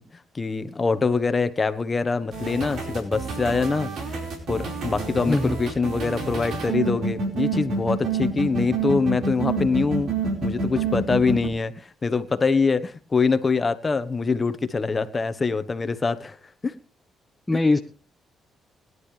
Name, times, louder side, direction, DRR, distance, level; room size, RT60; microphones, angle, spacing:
voice 1, 0.3-3.9 4.5-10.1 10.4-16.4 16.6-16.7, left 4 dB, 30° left, 12 dB, 1.2 m, -24 dB
sound 1, 2.3-11.5, right 4 dB, 70° right, 4.7 m, -27 dB
voice 2, 5.3-5.6 17.5-17.8, left 2 dB, 15° left, 6 dB, 0.9 m, -21 dB
21.0 x 11.0 x 3.3 m, 0.35 s
cardioid pair, 90°, 0 cm